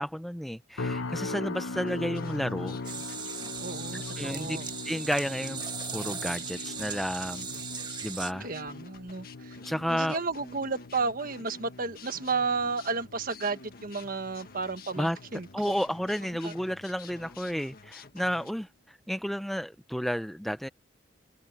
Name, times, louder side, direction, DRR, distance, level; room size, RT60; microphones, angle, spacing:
voice 1, 0.0-2.8 4.2-4.6 4.8-5.6 5.9-7.5 8.0-8.5 9.6-10.2 15.0-15.2 15.5-20.7, equal, ahead, 0.4 m, -31 dB
sound 1, 0.8-16.0 16.3-16.7 17.2-17.4, left 3 dB, 85° left, 0.9 m, -41 dB
sound 2, 1.9-18.5, left 5 dB, 50° left, 1.6 m, -51 dB
sound 3, 2.8-8.3, right 6 dB, 25° right, 1.5 m, -38 dB
voice 2, 3.6-4.7 8.4-9.6 9.9-15.5 16.4-16.5, right 4 dB, 45° right, 1.4 m, -32 dB
head